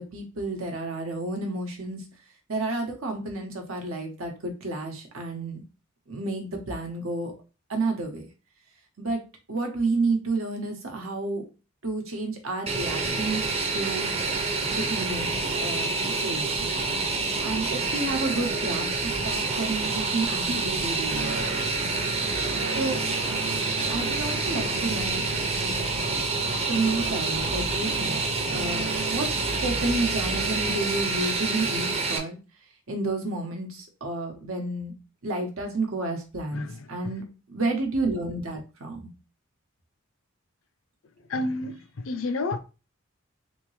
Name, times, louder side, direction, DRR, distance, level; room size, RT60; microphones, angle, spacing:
voice 1, 0.0-2.0 2.5-5.6 6.1-7.3 7.7-8.2 9.0-9.2 9.5-11.4 11.8-13.4 13.7-14.1 14.7-16.7 17.4-18.9 19.2-21.5 22.7-23.0 23.9-25.2 25.6-25.9 26.7-28.2 28.5-29.3 29.6-32.4 32.9-34.9 35.2-37.2 37.5-39.1, right 3 dB, 80° right, 1.0 m, -30 dB
Fixed-wing aircraft airplane, 12.7-32.2, right 3 dB, 30° right, 0.6 m, -28 dB
sound 1, 21.1-31.3, right 2 dB, 65° right, 0.8 m, -37 dB
voice 2, 41.3-41.8 42.0-42.6, left 2 dB, 70° left, 0.5 m, -29 dB
3.6 x 2.8 x 3.2 m
head